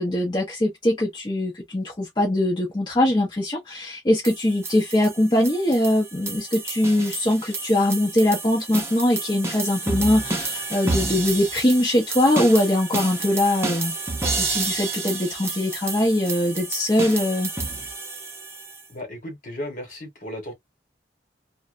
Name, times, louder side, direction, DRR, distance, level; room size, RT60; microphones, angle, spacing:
voice 1, 0.0-13.9 14.4-17.5, left 1 dB, 25° left, 0.8 m, -22 dB
sound 1, 4.2-18.8, right 3 dB, 15° right, 0.7 m, -30 dB
voice 2, 18.9-20.5, left 1 dB, 50° left, 1.3 m, -35 dB
2.6 x 2.2 x 2.4 m
head